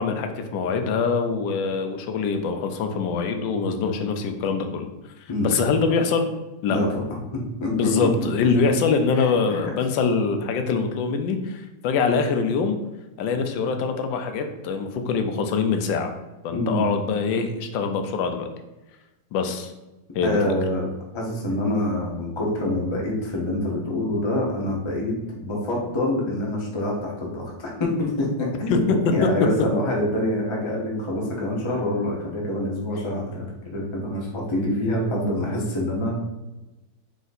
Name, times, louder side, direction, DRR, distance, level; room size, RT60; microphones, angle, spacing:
voice 1, 0.0-4.9 5.4-6.3 6.6-6.8 7.7-12.8 13.2-16.1 16.4-18.5 19.3-19.7 20.1-20.4, left 5 dB, 90° left, 6 dB, 1.3 m, -24 dB
voice 2, 7.3-8.1 9.1-9.6 16.5-16.9 20.2-25.2 25.4-36.2, left 1 dB, 35° left, -2 dB, 0.4 m, -26 dB
3.8 x 2.6 x 4.0 m, 1.0 s
omnidirectional pair, 1.9 m